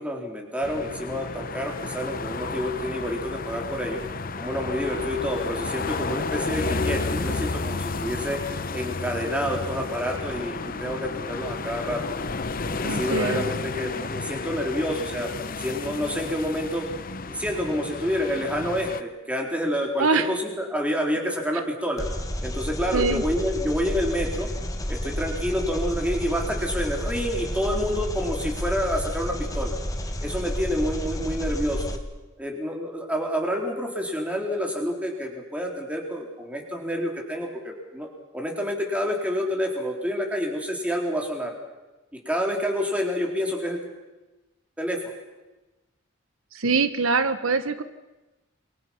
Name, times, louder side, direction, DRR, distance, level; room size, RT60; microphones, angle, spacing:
voice 1, 0.0-4.0 4.4-8.4 8.7-12.0 12.7-15.3 15.6-16.9 17.2-22.1 22.4-24.5 24.9-29.8 30.2-31.9 32.4-41.5 42.1-43.8 44.8-45.0, equal, 5° right, 1 dB, 4.2 m, -28 dB
sound 1, 0.6-19.0, left 3 dB, 45° left, 0.9 m, -32 dB
voice 2, 12.8-13.4 20.0-20.3 22.9-23.2 46.5-47.8, right 4 dB, 80° right, 11 dB, 1.2 m, -23 dB
Engine, 22.0-32.0, equal, 15° left, 1.7 m, -31 dB
28.0 x 23.5 x 6.0 m, 1.1 s
head